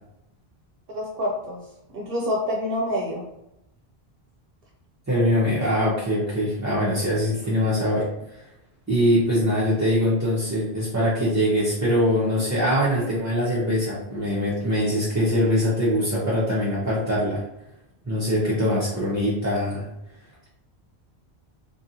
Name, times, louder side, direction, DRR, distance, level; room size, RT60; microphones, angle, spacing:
voice 1, 0.9-1.6 1.9-3.2, left 1 dB, 70° right, -1 dB, 0.7 m, -27 dB
voice 2, 5.1-8.1 8.9-17.4 18.1-19.9, equal, 20° right, -9 dB, 0.5 m, -23 dB
3.0 x 2.6 x 2.7 m, 0.85 s
omnidirectional pair, 1.1 m